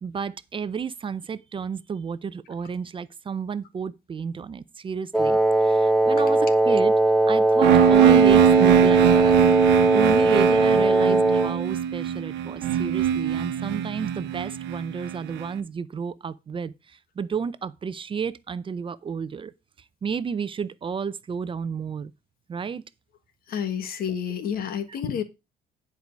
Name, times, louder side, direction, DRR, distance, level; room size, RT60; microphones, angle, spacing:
voice 1, 0.0-6.4 6.7-6.9 7.3-9.4 9.9-16.7 17.2-19.5 20.0-22.1 22.5-22.8, right 6 dB, 30° right, 0.6 m, -31 dB
Wind instrument woodwind instrument, 5.1-11.6, right 2 dB, ahead, 0.9 m, -20 dB
sound 1, 7.6-15.4, right 10 dB, 90° right, 1.0 m, -21 dB
voice 2, 23.5-25.2, left 8 dB, 60° left, 1.6 m, -29 dB
10.5 x 4.8 x 5.2 m
cardioid pair, 110°, 17 cm